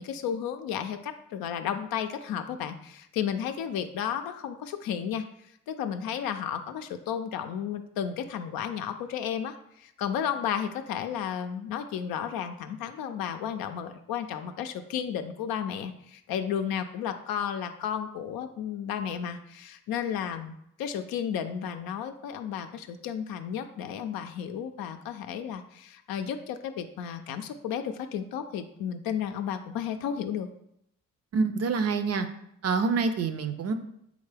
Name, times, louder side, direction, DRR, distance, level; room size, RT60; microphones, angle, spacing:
voice 1, 0.0-5.2 5.7-20.5 20.8-30.5, left 8 dB, 65° left, 8 dB, 0.5 m, -33 dB
voice 2, 31.3-32.3 32.6-33.7, right 4 dB, 40° right, 8 dB, 0.5 m, -26 dB
3.7 x 3.6 x 3.3 m, 0.75 s
hypercardioid pair, 50°, 38 cm